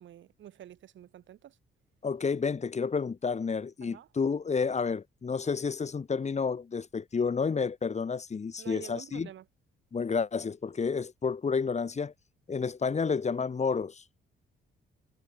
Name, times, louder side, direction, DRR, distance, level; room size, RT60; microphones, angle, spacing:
voice 1, 0.0-1.6 3.8-4.1 8.6-9.5, right 11 dB, 70° right, 3.9 m, -48 dB
voice 2, 2.0-9.3 9.9-12.1 12.5-14.0, left 5 dB, 35° left, 2.4 m, -30 dB
cardioid pair, 90°, 20 cm